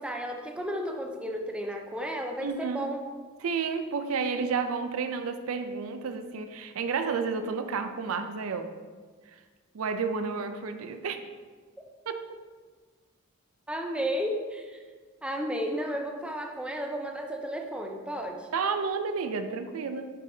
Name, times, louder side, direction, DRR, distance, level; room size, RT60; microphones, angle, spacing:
voice 1, 0.0-3.0 13.7-14.8 15.2-18.5, equal, 5° right, 2 dB, 0.5 m, -33 dB
voice 2, 2.4-2.9 3.4-8.7 9.3-9.4 9.7-11.2 12.1-12.2 18.5-20.1, right 5 dB, 85° right, 8 dB, 0.4 m, -31 dB
6.3 x 5.7 x 2.7 m, 1.5 s
head